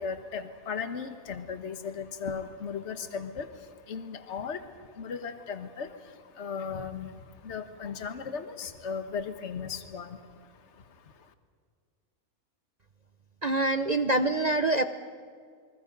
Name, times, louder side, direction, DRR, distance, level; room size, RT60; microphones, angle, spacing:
voice 1, 0.0-11.3, left 6 dB, 50° left, 8 dB, 1.5 m, -37 dB
voice 2, 13.4-14.8, right 2 dB, 40° right, 8 dB, 0.7 m, -25 dB
28.5 x 22.5 x 5.3 m, 2.1 s
omnidirectional pair, 1.5 m